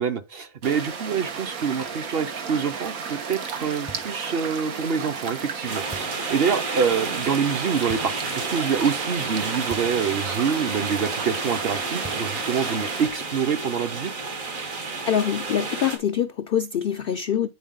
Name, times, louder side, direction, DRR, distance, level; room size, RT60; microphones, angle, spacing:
voice 1, 0.0-14.1, right 6 dB, 55° right, 0.8 m, -26 dB
sound 1, 0.6-13.1, right 5 dB, 90° right, 1.6 m, -34 dB
sound 2, 3.9-4.3 5.9-6.3 7.9-8.2 9.7-10.1 10.3-10.4 12.0-12.4, right 3 dB, 10° right, 0.5 m, -41 dB
sound 3, 5.7-16.0, right 3 dB, 70° right, 2.2 m, -31 dB
voice 2, 15.0-17.5, left 9 dB, 70° left, 0.5 m, -24 dB
9.2 x 4.5 x 3.7 m
omnidirectional pair, 1.4 m